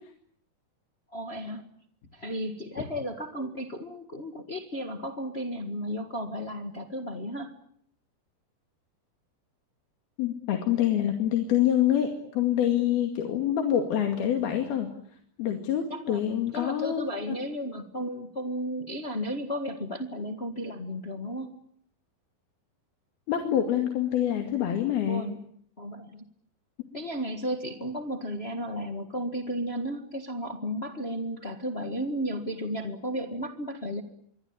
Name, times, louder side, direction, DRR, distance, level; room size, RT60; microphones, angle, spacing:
voice 1, 1.1-1.6 2.1-7.5 15.9-21.5 25.1-25.4 25.8-26.2 26.9-34.0, equal, 45° left, 7 dB, 0.8 m, -34 dB
voice 2, 10.2-14.9 15.4-17.3 23.3-25.3, left 10 dB, 80° left, 5 dB, 4.2 m, -26 dB
27.0 x 24.0 x 8.8 m, 0.65 s
omnidirectional pair, 4.3 m